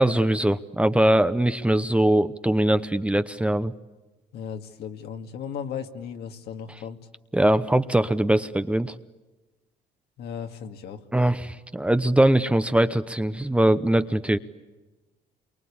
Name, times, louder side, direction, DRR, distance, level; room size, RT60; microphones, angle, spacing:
voice 1, 0.0-3.7 7.3-8.9 11.1-14.4, right 1 dB, 5° right, 11 dB, 0.8 m, -21 dB
voice 2, 4.3-7.0 10.2-11.0, left 7 dB, 75° left, 5 dB, 2.2 m, -36 dB
28.5 x 23.5 x 8.7 m, 1.2 s
cardioid pair, 110°, 17 cm